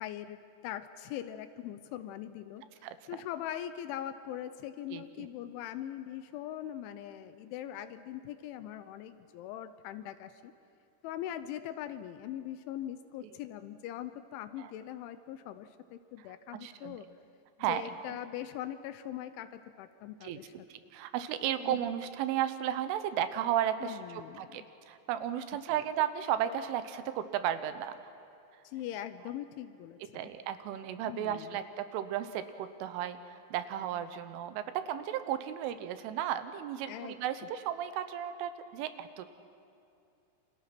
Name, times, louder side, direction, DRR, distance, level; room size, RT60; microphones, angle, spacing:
voice 1, 0.0-2.6 3.1-10.5 11.0-17.1 17.7-20.5 21.6-21.8 23.8-24.6 25.7-25.8 28.6-30.3 31.0-31.6 36.9-37.2, left 11 dB, 80° left, 11 dB, 3.0 m, -41 dB
voice 2, 4.9-5.3 14.6-14.7 16.5-17.0 17.6-17.8 20.2-20.4 20.7-28.0 28.9-29.0 30.1-39.3, right 10 dB, 80° right, 11 dB, 3.4 m, -34 dB
29.0 x 26.0 x 6.0 m, 2.6 s
omnidirectional pair, 5.8 m